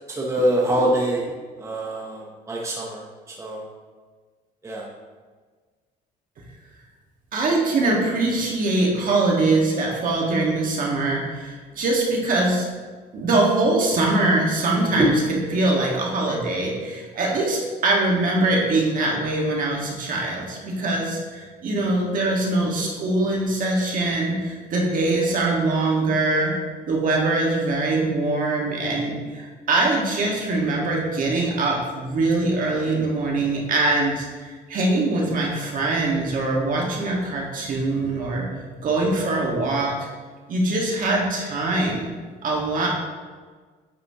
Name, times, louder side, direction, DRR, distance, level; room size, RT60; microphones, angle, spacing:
voice 1, 0.1-1.2 1.6-3.6 4.6-4.9 15.0-15.1, right 1 dB, 15° right, -2 dB, 0.8 m, -24 dB
voice 2, 7.3-12.6 13.1-26.5 26.8-38.4 38.8-39.9 40.5-42.1 42.4-42.9, right 2 dB, 55° right, -2 dB, 1.5 m, -23 dB
8.9 x 4.1 x 2.8 m, 1.5 s
cardioid pair, 110°, 17 cm